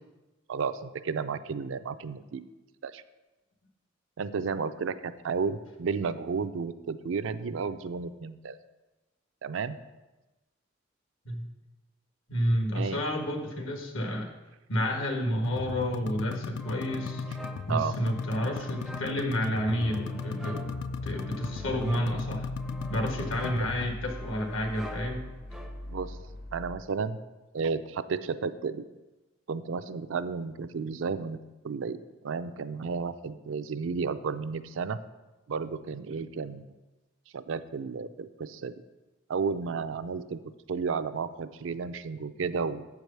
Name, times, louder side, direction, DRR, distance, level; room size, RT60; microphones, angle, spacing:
voice 1, 0.5-2.4 2.8-3.0 4.2-8.6 9.4-9.8 12.7-13.0 17.7-18.0 23.4-23.7 25.9-26.2 26.5-27.2 27.5-28.8 29.5-31.4 31.6-32.0 32.2-35.0 35.5-36.7 37.3-38.7 39.3-40.4 40.7-42.8, right 5 dB, 70° right, 11 dB, 0.4 m, -32 dB
voice 2, 12.3-14.3 14.7-17.2 17.7-20.6 21.0-22.5 22.9-25.2, equal, 75° left, 3 dB, 1.5 m, -30 dB
sound 1, 15.4-23.9, left 4 dB, 60° left, 0.3 m, -36 dB
sound 2, 16.6-26.1, equal, ahead, 0.5 m, -46 dB
sound 3, 19.8-26.8, left 1 dB, 45° left, 0.7 m, -42 dB
7.7 x 4.8 x 6.7 m, 1.1 s
head